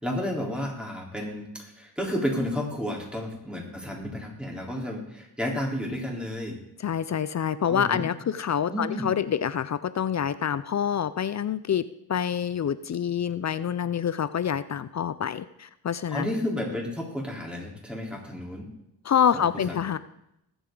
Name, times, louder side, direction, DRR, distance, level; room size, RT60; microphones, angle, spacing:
voice 1, 0.0-6.6 7.7-8.1 8.7-9.1 16.1-18.7 19.5-19.8, left 1 dB, 5° right, -1 dB, 3.7 m, -31 dB
voice 2, 6.8-16.3 19.0-20.0, left 8 dB, 45° left, 15 dB, 0.5 m, -27 dB
20.5 x 8.0 x 3.9 m, 0.81 s
cardioid pair, 85°, 37 cm